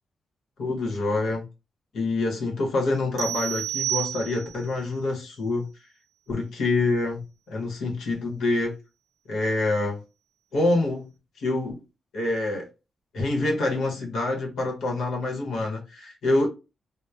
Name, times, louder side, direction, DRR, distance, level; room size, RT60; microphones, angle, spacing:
voice 1, 0.6-1.4 1.9-5.7 6.3-7.2 7.5-8.8 9.3-10.0 10.5-11.1 11.4-11.8 12.1-12.7 13.1-16.5, left 2 dB, 85° left, 1.0 m, -26 dB
sound 1, 3.2-4.7, right 12 dB, 70° right, 0.5 m, -30 dB
2.9 x 2.0 x 2.3 m
wide cardioid pair, 135°, 0 cm